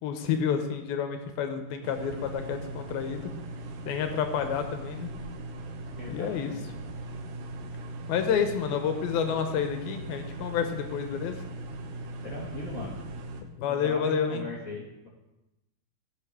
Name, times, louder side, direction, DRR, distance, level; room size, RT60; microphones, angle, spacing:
voice 1, 0.0-3.3 3.9-5.1 6.1-6.6 8.1-11.5 13.6-14.5, left 7 dB, 75° left, 6 dB, 2.5 m, -29 dB
sound 1, 1.8-13.4, right 2 dB, 70° right, 2.0 m, -39 dB
voice 2, 5.9-6.6 12.2-13.0 13.7-15.1, left 2 dB, 20° left, -5 dB, 2.7 m, -39 dB
16.5 x 5.9 x 4.7 m, 0.95 s
omnidirectional pair, 4.9 m